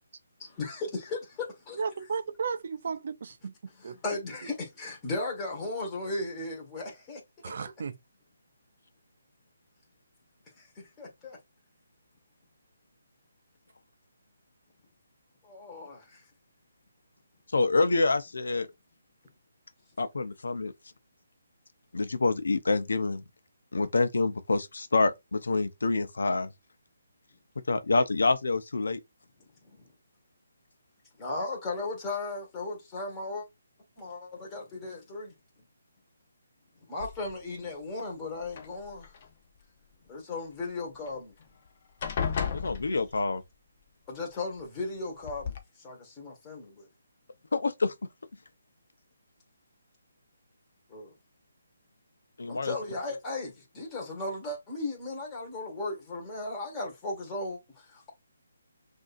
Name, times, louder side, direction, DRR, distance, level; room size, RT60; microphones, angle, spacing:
voice 1, 0.4-1.7 3.8-7.2 10.6-11.4 15.4-16.2 29.6-29.8 31.2-33.5 34.0-35.3 36.9-39.1 40.1-41.3 42.9-43.0 44.1-46.9 50.9-51.1 52.5-58.1, left 2 dB, 15° left, 1.5 m, -36 dB
voice 2, 1.8-3.5 3.8-4.0 7.4-8.0, right 5 dB, 50° right, 0.5 m, -34 dB
voice 3, 17.5-18.7 20.0-20.7 21.9-23.2 23.7-26.5 27.7-29.0 42.5-43.4 47.5-47.9 52.4-52.7, left 3 dB, 80° left, 0.7 m, -27 dB
sound 1, 37.0-37.6 38.4-39.3 41.1-41.2 41.5-41.7 42.0-43.4 44.6-44.7 45.2-45.6, left 7 dB, 35° left, 0.8 m, -34 dB
6.2 x 2.7 x 2.5 m
hypercardioid pair, 170°, 0 cm